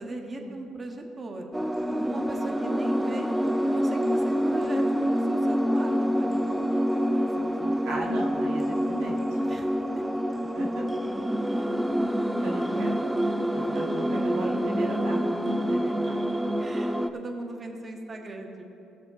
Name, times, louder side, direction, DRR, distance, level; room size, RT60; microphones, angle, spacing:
voice 1, 0.0-1.5 2.0-3.3 3.7-6.5 7.4-7.8 9.4-9.7 16.6-18.7, right 2 dB, 30° right, 3 dB, 1.5 m, -39 dB
sound 1, 1.5-17.1, equal, 5° right, 0.6 m, -27 dB
voice 2, 7.8-9.4 10.5-10.8 12.4-13.1 13.5-16.2, right 1 dB, 90° right, -2 dB, 1.6 m, -36 dB
18.5 x 6.5 x 4.2 m, 2.9 s
supercardioid pair, 80°, 0 cm